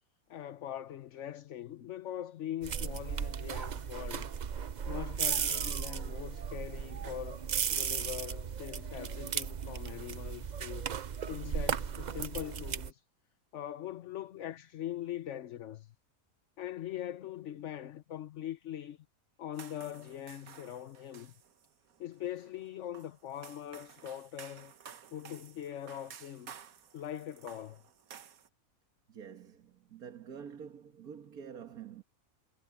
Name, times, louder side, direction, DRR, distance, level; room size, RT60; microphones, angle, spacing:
voice 1, 0.3-4.3 4.9-10.9 11.3-13.0 13.5-15.9 16.6-19.0 19.4-21.3 22.0-24.7 25.1-26.5 26.9-27.8, left 11 dB, 60° left, 1.0 m, -42 dB
sound 1, 2.6-12.9, right 7 dB, 55° right, 0.5 m, -36 dB
sound 2, 19.5-28.5, right 8 dB, 75° right, 1.5 m, -54 dB
voice 2, 29.1-32.0, right 7 dB, 90° right, 2.0 m, -47 dB
omnidirectional pair, 1.5 m